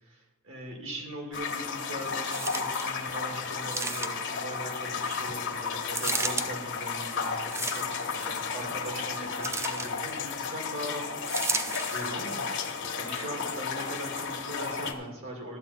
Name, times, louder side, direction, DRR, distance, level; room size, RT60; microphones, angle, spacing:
voice 1, 0.0-11.1 11.5-12.5 13.0-15.6, right 1 dB, 65° right, 1 dB, 2.2 m, -40 dB
sound 1, 1.3-14.9, left 5 dB, 60° left, 1.1 m, -33 dB
Picking up one paper, 2.3-2.9 3.7-4.4 5.9-6.5 7.4-8.1 9.4-9.9 11.3-12.1 12.8-12.9, right 3 dB, 15° right, 0.4 m, -33 dB
12.0 x 8.5 x 4.2 m, 1.2 s
head